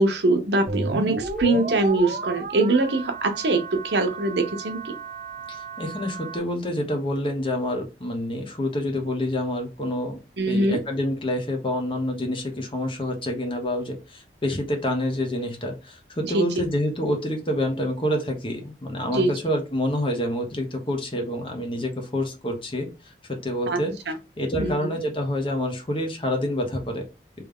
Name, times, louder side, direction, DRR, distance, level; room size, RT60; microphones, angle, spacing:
voice 1, 0.0-4.8 10.4-10.8 16.3-16.5 19.1-19.3 23.7-23.8 24.1-24.2 24.6-24.7, right 2 dB, 75° right, 6 dB, 0.8 m, -22 dB
sound 1, 0.7-6.4, right 3 dB, 45° right, 0.6 m, -33 dB
voice 2, 5.5-10.2 10.5-23.9 24.4-27.1, left 1 dB, 30° left, 4 dB, 0.9 m, -27 dB
3.4 x 3.1 x 3.6 m, 0.28 s
head